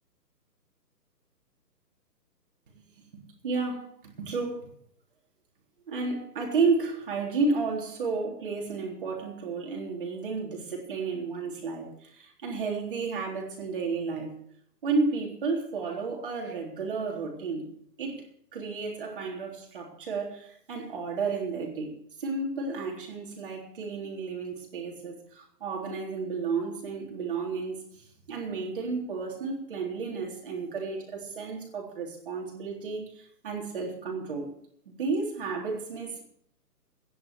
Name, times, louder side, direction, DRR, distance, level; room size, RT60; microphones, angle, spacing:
voice 1, 2.7-4.7 5.9-14.4 14.8-17.7 18.0-18.2 18.5-21.9 22.2-34.5 34.9-36.2, right 4 dB, 30° right, 3.7 m, -32 dB
15.5 x 10.5 x 6.4 m
hypercardioid pair, 180°, 49 cm